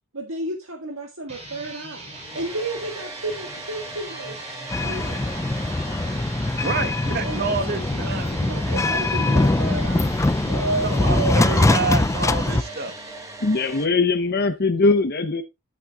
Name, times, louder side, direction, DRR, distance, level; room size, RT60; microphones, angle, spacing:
voice 1, 0.1-2.1 2.3-4.4 4.8-5.2 7.2-7.8 8.2-10.1 10.4-11.6, right 2 dB, 70° right, 1.8 m, -31 dB
sound 1, 1.2-14.0, right 2 dB, 30° right, 5.5 m, -40 dB
Domestic sounds home sounds, 2.1-13.9, right 2 dB, 15° right, 1.1 m, -40 dB
sound 2, 4.7-12.6, left 2 dB, 15° left, 0.4 m, -22 dB
voice 2, 6.5-8.8 10.8-12.9, right 4 dB, 45° right, 1.2 m, -28 dB
voice 3, 13.4-15.4, left 3 dB, 50° left, 0.8 m, -20 dB
12.0 x 8.6 x 2.4 m
head